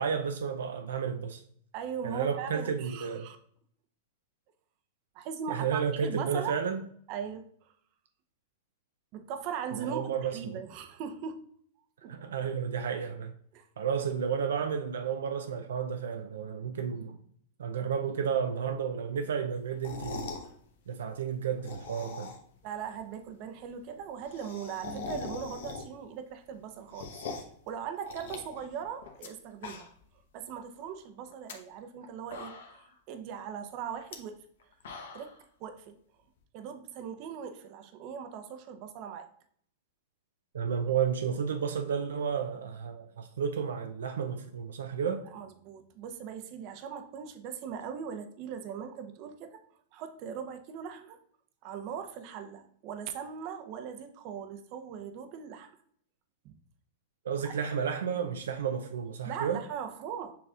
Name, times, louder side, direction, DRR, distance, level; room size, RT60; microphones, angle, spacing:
voice 1, 0.0-1.4 2.0-3.3 5.5-6.8 9.8-10.6 12.1-13.3 13.8-17.2 17.6-20.3 20.9-22.3 40.5-45.2 57.2-59.6, right 7 dB, 80° right, 0.4 m, -32 dB
voice 2, 1.7-3.4 5.1-6.6 7.1-7.7 9.1-11.4 12.0-12.2 13.5-13.7 22.6-27.1 27.4-29.9 30.3-34.5 35.1-35.3 35.6-36.0 36.5-39.3 45.3-49.6 49.9-51.2 51.6-55.7 56.4-56.6 57.4-57.5 59.2-60.4, right 7 dB, 50° right, 0.7 m, -40 dB
sound 1, 19.7-20.5 21.5-22.6 22.9-23.0 23.2-23.3 23.6-23.7 23.9-26.1 26.5-27.6 28.1-29.3 29.5-30.1 30.5-30.6 31.3-31.5 32.0-32.1 32.3-32.9 34.0-34.2 34.6-35.4, left 5 dB, 75° left, 0.9 m, -42 dB
6.8 x 3.2 x 2.4 m
hypercardioid pair, 120°, 0 cm